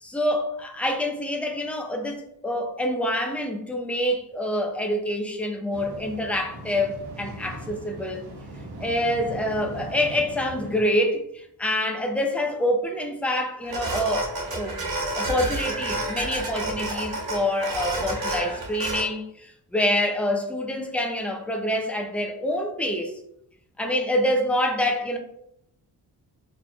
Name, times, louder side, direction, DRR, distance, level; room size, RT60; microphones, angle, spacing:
voice 1, 0.0-8.2 8.8-23.1 23.8-25.2, left 1 dB, 5° left, 2 dB, 0.3 m, -26 dB
sound 1, 5.7-10.8, right 1 dB, 85° right, 0.8 m, -39 dB
sound 2, 13.6-19.0, right 2 dB, 65° right, 1.1 m, -30 dB
4.1 x 3.0 x 2.3 m, 0.76 s
wide cardioid pair, 150°, 39 cm